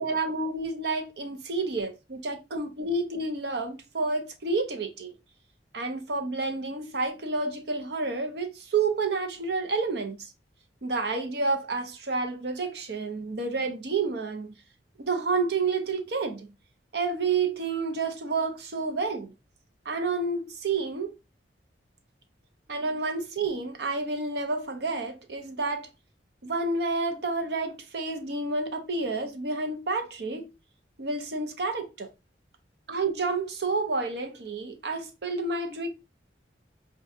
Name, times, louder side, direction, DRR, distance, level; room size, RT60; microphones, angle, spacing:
voice 1, 0.0-5.1 5.7-10.3 10.8-14.5 15.0-16.5 16.9-19.3 19.8-21.2 22.7-25.9 26.4-30.5 31.0-32.1 32.9-35.9, right 3 dB, 65° right, 0.7 m, -29 dB
5.8 x 2.3 x 2.7 m
head